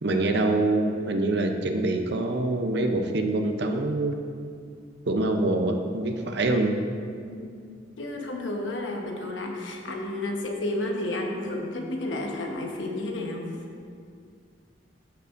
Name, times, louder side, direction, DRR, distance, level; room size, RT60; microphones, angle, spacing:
voice 1, 0.0-4.2 5.1-6.8, right 2 dB, 65° right, 4 dB, 0.7 m, -25 dB
voice 2, 8.0-13.5, left 1 dB, 85° left, 1 dB, 1.1 m, -31 dB
13.5 x 6.7 x 2.6 m, 2.3 s
head